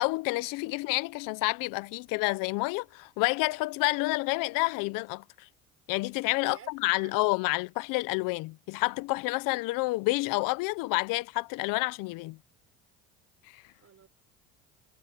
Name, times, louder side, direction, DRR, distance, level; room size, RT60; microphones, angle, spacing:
voice 1, 0.0-5.5 5.9-12.4 13.5-13.6, left 23 dB, 70° left, 1.0 m, -29 dB
voice 2, 6.4-7.1 8.2-8.3 13.8-14.1, right 8 dB, 40° right, 6.5 m, -52 dB
hypercardioid pair, 75°, 34 cm